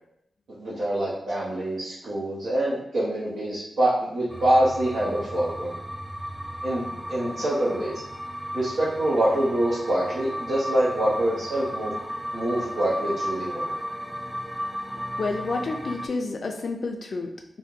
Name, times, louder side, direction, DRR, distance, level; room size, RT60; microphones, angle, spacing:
voice 1, 0.6-5.7 6.6-6.8 7.1-7.9 8.5-11.9 12.3-13.7, right 1 dB, 90° right, -9 dB, 0.7 m, -25 dB
sound 1, 4.3-16.1, equal, 5° right, 0.4 m, -34 dB
voice 2, 15.2-17.6, left 3 dB, 65° left, 3 dB, 0.3 m, -30 dB
2.7 x 2.1 x 3.6 m, 0.79 s
cardioid pair, 60°, 0 cm